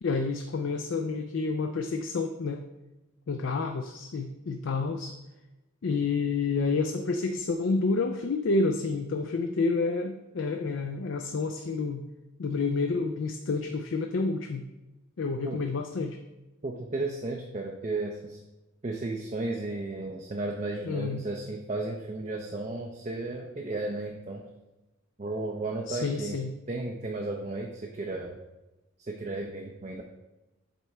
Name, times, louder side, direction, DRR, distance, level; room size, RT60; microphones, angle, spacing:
voice 1, 0.0-2.7 3.3-5.2 5.8-12.0 12.4-14.7 15.2-16.2 20.9-21.3 25.9-26.5, left 4 dB, 55° left, 6 dB, 0.4 m, -29 dB
voice 2, 16.6-18.4 18.8-24.4 25.2-26.4 26.7-28.4 29.0-30.0, right 2 dB, 30° right, 1 dB, 0.5 m, -34 dB
8.0 x 3.4 x 4.2 m, 1.0 s
head